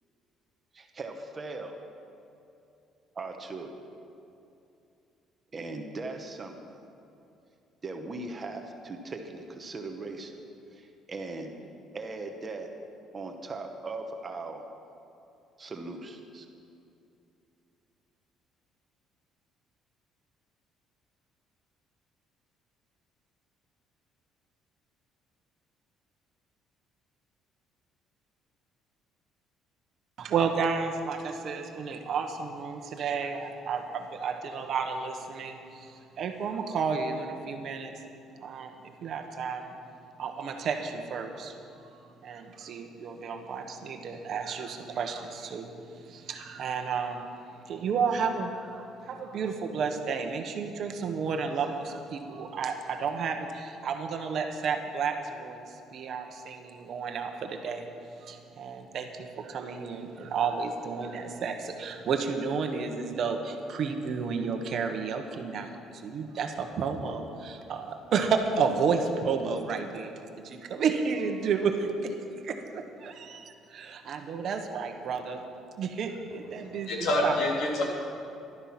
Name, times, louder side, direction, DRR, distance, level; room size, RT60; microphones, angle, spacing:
voice 1, 0.7-1.8 3.1-3.7 5.5-6.8 7.8-10.4 10.7-11.5 11.9-12.7 13.1-14.7 15.6-16.5, right 3 dB, 25° right, 4 dB, 1.0 m, -39 dB
voice 2, 30.2-37.9 38.4-38.7 39.0-39.7 40.2-41.5 42.2-45.7 46.0-47.3 47.6-55.6 55.9-57.9 58.2-72.1 72.4-75.4 75.8-76.9 77.2-77.3, right 5 dB, 45° right, 5 dB, 1.2 m, -32 dB
voice 3, 76.5-77.8, left 1 dB, 60° left, -2 dB, 3.2 m, -27 dB
14.5 x 12.0 x 5.9 m, 2.7 s
cardioid pair, 160°, 0 cm